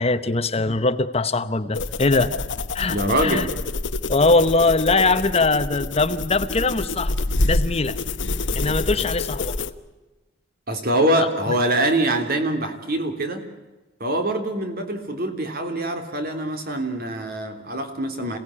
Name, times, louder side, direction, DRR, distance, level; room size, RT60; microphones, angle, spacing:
voice 1, 0.0-2.3 2.7-3.5 4.1-7.2 7.4-8.0 8.5-9.6, left 3 dB, 35° left, 12 dB, 0.9 m, -21 dB
sound 1, 1.7-9.7, left 2 dB, 80° left, 1.2 m, -27 dB
voice 2, 2.9-3.5 10.7-13.5 14.0-18.4, right 1 dB, 55° right, 6 dB, 3.3 m, -24 dB
27.5 x 17.5 x 9.9 m, 1.2 s
head